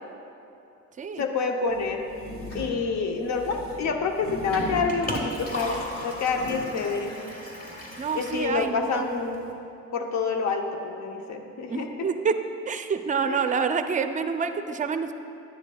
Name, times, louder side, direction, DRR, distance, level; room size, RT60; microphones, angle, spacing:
voice 1, 1.2-2.0 2.5-7.1 8.1-9.4 9.9-12.1 13.3-13.4, left 4 dB, 65° left, 4 dB, 0.8 m, -28 dB
sound 1, 1.7-6.7, equal, 50° left, 1.6 m, -38 dB
Liquid, 4.5-9.5, left 1 dB, 30° left, 1.4 m, -37 dB
voice 2, 8.0-9.1 11.7-12.4 12.7-15.1, right 5 dB, 25° right, 8 dB, 0.4 m, -27 dB
10.5 x 9.8 x 2.3 m, 2.7 s
cardioid pair, 90°, 30 cm